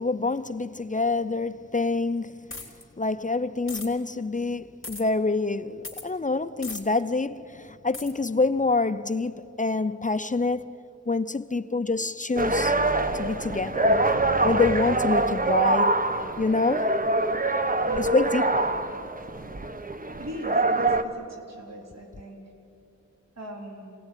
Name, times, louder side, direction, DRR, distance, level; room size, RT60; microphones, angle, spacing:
voice 1, 0.0-2.4 3.0-10.8 11.1-12.8 13.1-14.0 14.4-15.9 16.4-16.9 18.0-18.7, left 3 dB, 25° left, 0.7 m, -26 dB
sound 1, 2.5-2.8 3.7-3.9 4.8-5.0 5.8-6.1 6.6-6.8 7.9-8.1, left 3 dB, 45° left, 3.3 m, -37 dB
sound 2, 12.4-21.0, right 2 dB, 30° right, 1.2 m, -24 dB
voice 2, 17.8-18.7 19.4-19.5 20.2-22.4 23.4-24.0, right 1 dB, 60° right, 4.0 m, -41 dB
27.0 x 18.0 x 10.0 m
wide cardioid pair, 75°, 29 cm